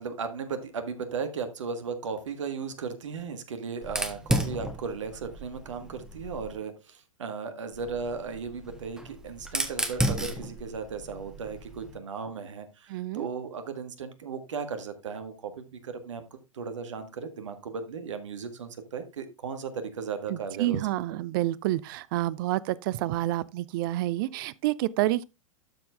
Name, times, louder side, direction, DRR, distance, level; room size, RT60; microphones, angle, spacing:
voice 1, 0.0-20.8, right 5 dB, 65° right, 1.7 m, -36 dB
Fire, 3.8-6.6 7.7-12.0, right 1 dB, 5° right, 1.5 m, -33 dB
voice 2, 12.9-13.3 20.3-25.2, right 16 dB, 40° right, 0.5 m, -28 dB
12.5 x 4.6 x 3.5 m
figure-of-eight pair, 95°, 17 cm